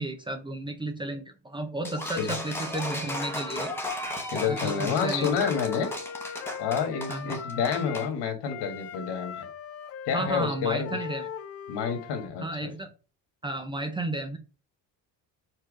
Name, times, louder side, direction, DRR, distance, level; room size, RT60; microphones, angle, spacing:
voice 1, 0.0-3.7 4.3-5.4 7.1-7.4 10.1-11.3 12.4-12.9 13.4-14.4, right 1 dB, 10° right, 6 dB, 0.5 m, -33 dB
sound 1, 1.8-8.1, left 1 dB, 5° left, 1.0 m, -35 dB
voice 2, 4.3-5.9 6.6-9.5 10.1-10.9 11.7-12.7, left 6 dB, 80° left, 6 dB, 1.8 m, -29 dB
Wind instrument woodwind instrument, 4.4-8.2 8.4-12.3, left 7 dB, 40° left, 0.5 m, -39 dB
4.7 x 4.5 x 4.9 m, 0.35 s
cardioid pair, 170°, 40 cm